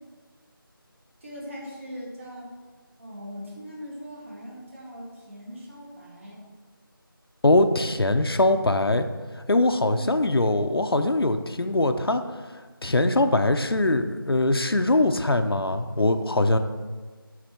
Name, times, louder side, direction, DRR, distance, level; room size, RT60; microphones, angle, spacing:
voice 1, 1.2-2.5 3.0-6.4 9.9-10.2, equal, 35° right, -4 dB, 2.1 m, -40 dB
voice 2, 7.4-9.1 9.5-12.2 12.8-16.6, left 2 dB, 90° left, 8 dB, 0.7 m, -22 dB
9.5 x 4.2 x 4.5 m, 1.4 s
figure-of-eight pair, 175°, 12 cm